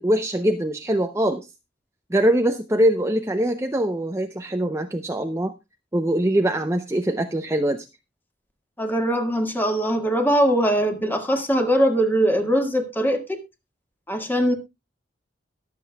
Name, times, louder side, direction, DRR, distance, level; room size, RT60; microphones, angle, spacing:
voice 1, 0.0-1.5 2.1-5.5 5.9-7.9, right 1 dB, 15° right, 6 dB, 0.6 m, -22 dB
voice 2, 8.8-13.4 14.1-14.5, equal, 10° left, 5 dB, 1.8 m, -21 dB
22.5 x 7.6 x 2.3 m, 0.23 s
head